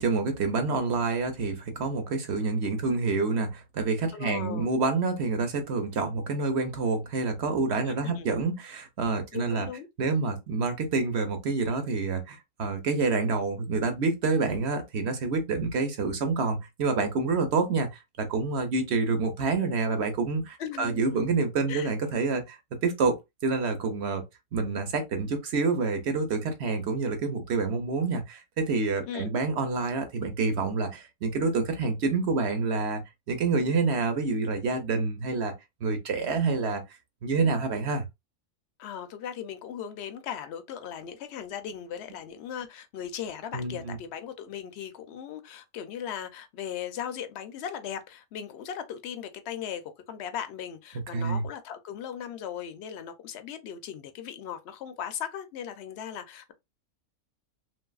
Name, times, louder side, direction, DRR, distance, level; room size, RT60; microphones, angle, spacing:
voice 1, 0.0-9.7 10.0-17.9 18.2-23.2 23.4-24.2 24.5-33.0 33.3-35.5 35.8-36.8 37.2-38.0 43.5-44.0 51.1-51.5, right 4 dB, 60° right, 0.8 m, -27 dB
voice 2, 4.1-4.7 7.9-8.3 9.3-9.9 20.6-21.2 21.7-21.9 29.1-29.3 38.8-56.5, left 9 dB, 65° left, 0.7 m, -38 dB
3.1 x 2.6 x 2.3 m
omnidirectional pair, 1.6 m